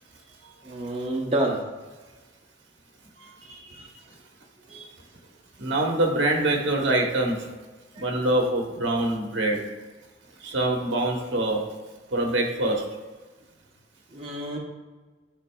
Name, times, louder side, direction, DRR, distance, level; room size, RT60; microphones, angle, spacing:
voice 1, 0.7-1.6 3.2-3.9 4.7-4.9 8.0-8.3 14.1-14.6, right 1 dB, 30° right, -2 dB, 0.8 m, -30 dB
voice 2, 5.6-7.5 8.0-9.6 10.4-11.7 12.1-12.9, right 1 dB, 80° right, 1 dB, 1.1 m, -24 dB
11.5 x 3.9 x 2.3 m, 1.3 s
head